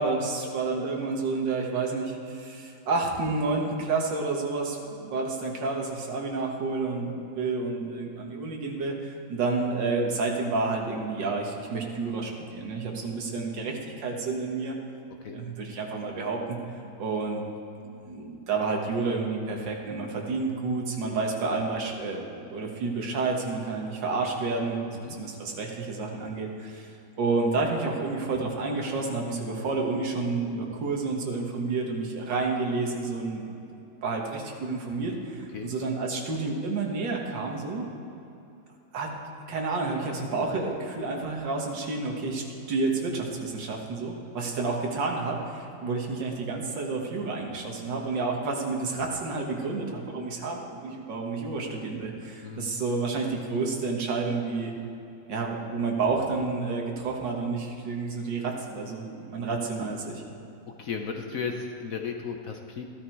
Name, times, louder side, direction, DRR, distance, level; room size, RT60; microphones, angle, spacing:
voice 1, 0.0-14.8 15.3-16.6 17.0-17.4 17.8-24.8 25.2-26.9 27.2-33.6 34.0-37.9 38.9-39.1 39.5-54.7 55.3-60.2, right 3 dB, 75° right, 0 dB, 2.1 m, -30 dB
voice 2, 52.4-52.8 60.8-62.8, left 5 dB, 60° left, 4 dB, 1.0 m, -35 dB
14.0 x 12.0 x 4.6 m, 2.8 s
omnidirectional pair, 2.0 m